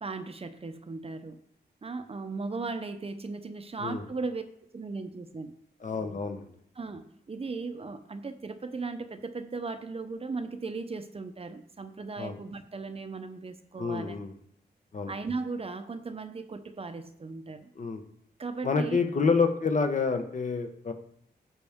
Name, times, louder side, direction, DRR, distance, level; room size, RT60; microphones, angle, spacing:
voice 1, 0.0-1.4 1.8-4.4 4.7-5.5 6.8-14.2 15.1-17.7 18.4-19.1, right 3 dB, 35° right, 9 dB, 0.7 m, -37 dB
voice 2, 5.8-6.5 12.2-12.4 13.8-14.3 14.9-15.1 17.7-18.0 18.6-20.9, left 4 dB, 45° left, 6 dB, 1.0 m, -28 dB
15.0 x 5.7 x 3.6 m, 0.69 s
wide cardioid pair, 125°, 17 cm